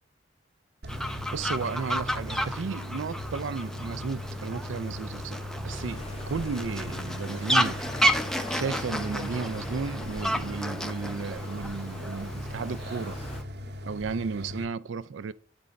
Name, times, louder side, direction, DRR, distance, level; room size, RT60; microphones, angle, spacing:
sound 1, 0.8-14.6, left 1 dB, 55° right, 0.9 m, -38 dB
Fowl, 0.9-13.4, equal, 5° left, 0.4 m, -32 dB
voice 1, 1.3-7.9 8.5-13.2 13.9-15.3, right 5 dB, 80° right, 0.4 m, -34 dB
sound 2, 5.7-13.4, left 2 dB, 30° left, 0.8 m, -44 dB
9.8 x 3.4 x 5.2 m
head